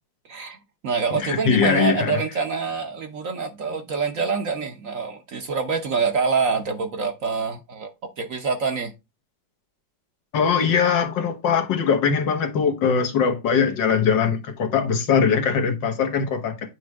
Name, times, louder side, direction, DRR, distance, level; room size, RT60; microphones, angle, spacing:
voice 1, 0.3-0.6 0.8-7.9 8.2-8.9, right 5 dB, 55° right, 1.1 m, -26 dB
voice 2, 1.2-2.2 10.3-16.6, left 6 dB, 75° left, 1.8 m, -21 dB
8.6 x 3.2 x 4.6 m
omnidirectional pair, 2.0 m